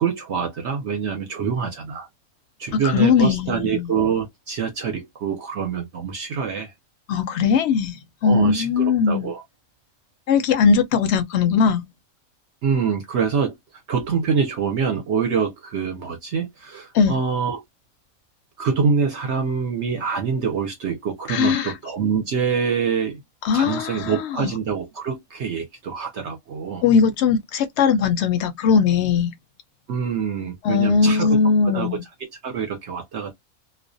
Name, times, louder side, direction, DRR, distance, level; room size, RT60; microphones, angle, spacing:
voice 1, 0.0-2.1 2.6-6.7 8.2-9.4 12.6-13.6 13.9-17.6 18.6-23.2 23.5-26.8 29.9-31.4 31.6-32.0 32.4-33.3, right 6 dB, 60° right, 0.8 m, -25 dB
voice 2, 2.7-3.9 7.1-8.0 8.2-9.3 10.3-11.8 16.9-17.2 21.3-21.7 23.4-24.5 26.8-29.3 30.6-32.0, left 6 dB, 65° left, 0.7 m, -19 dB
2.4 x 2.1 x 2.5 m
omnidirectional pair, 1.5 m